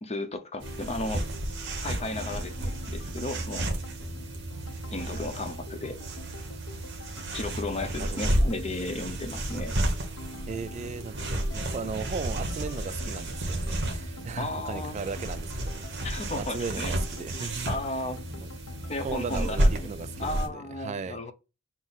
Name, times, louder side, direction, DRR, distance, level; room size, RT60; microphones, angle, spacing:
voice 1, 0.0-1.2 1.8-3.8 4.9-6.0 7.3-9.7 14.4-15.0 16.0-16.9 17.4-18.2 18.9-19.9 20.2-21.3, left 2 dB, 30° left, 0.6 m, -34 dB
sound 1, 0.6-20.5, left 3 dB, 70° left, 0.5 m, -45 dB
sound 2, 0.6-20.5, right 1 dB, 60° right, 1.0 m, -32 dB
voice 2, 8.0-8.5 10.5-17.7 18.4-18.5 19.0-21.2, right 4 dB, 35° right, 0.3 m, -37 dB
6.0 x 2.0 x 4.0 m
head